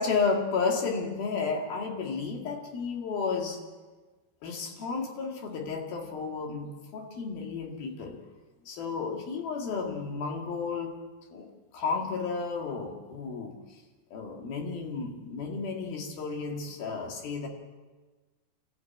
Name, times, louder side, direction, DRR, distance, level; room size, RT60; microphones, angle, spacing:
voice 1, 0.0-3.6 4.4-8.2 8.7-11.0 11.3-13.6 14.1-17.5, left 4 dB, 55° left, 2 dB, 3.7 m, -32 dB
25.0 x 15.0 x 8.5 m, 1.3 s
omnidirectional pair, 5.4 m